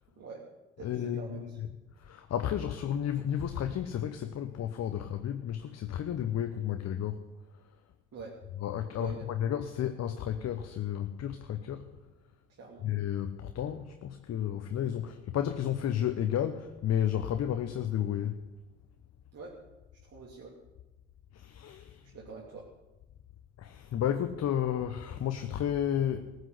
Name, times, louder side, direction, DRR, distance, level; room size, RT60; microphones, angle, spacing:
voice 1, 0.2-0.5 0.8-1.6 8.1-8.4 9.0-9.3 12.5-12.9 19.3-19.6 20.0-20.6 22.1-22.7, right 4 dB, 45° right, -4 dB, 2.9 m, -45 dB
voice 2, 0.8-1.7 2.0-7.2 8.6-11.9 12.8-18.4 21.3-22.1 23.6-26.3, left 10 dB, 50° left, 7 dB, 1.0 m, -32 dB
18.5 x 6.5 x 8.1 m, 1.1 s
hypercardioid pair, 50°, 34 cm